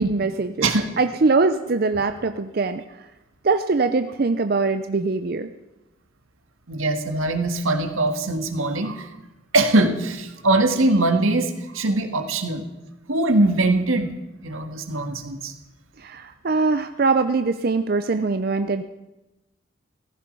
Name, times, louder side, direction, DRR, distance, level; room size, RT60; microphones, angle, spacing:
voice 1, 0.0-0.7 1.0-2.8 3.4-5.5 16.0-18.8, right 3 dB, 45° right, 9 dB, 0.5 m, -22 dB
voice 2, 6.7-9.1 9.5-12.6 13.1-14.1 14.4-15.5, right 2 dB, 85° right, 6 dB, 1.7 m, -21 dB
15.5 x 15.0 x 5.4 m, 1.0 s
head